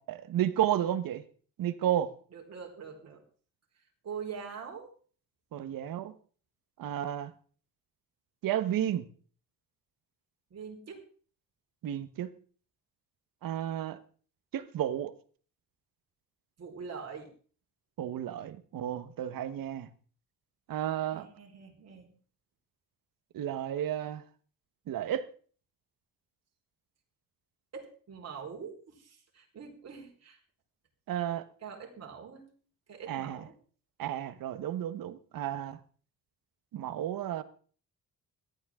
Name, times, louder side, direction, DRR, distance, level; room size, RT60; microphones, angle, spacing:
voice 1, 0.1-1.2 1.6-2.1 5.5-6.1 6.8-7.3 8.4-9.1 11.8-12.3 13.4-14.0 14.5-15.1 18.0-19.9 20.7-21.3 23.3-24.2 24.9-25.3 31.1-31.5 33.1-33.4 34.0-35.8 36.7-37.4, right 11 dB, 80° right, 12 dB, 1.3 m, -32 dB
voice 2, 2.3-3.2 4.0-4.9 10.5-11.0 16.6-17.3 21.1-22.1 27.7-30.4 31.6-32.5 32.9-33.5, right 6 dB, 50° right, 1 dB, 4.6 m, -44 dB
17.5 x 13.5 x 3.7 m, 0.42 s
cardioid pair, 145°, 34 cm